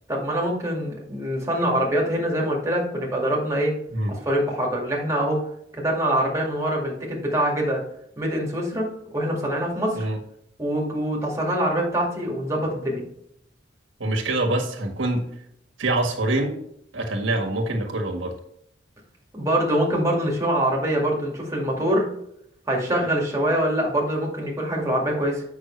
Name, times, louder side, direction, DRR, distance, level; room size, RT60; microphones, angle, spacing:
voice 1, 0.1-3.7 4.1-5.4 5.7-7.8 8.2-8.9 9.1-10.1 10.6-13.0 19.3-22.1 22.7-25.4, right 1 dB, 15° right, -2 dB, 2.1 m, -24 dB
voice 2, 14.0-15.3 15.8-16.6 16.9-18.3, right 2 dB, 80° right, 1 dB, 1.6 m, -25 dB
8.0 x 6.0 x 3.2 m, 0.73 s
head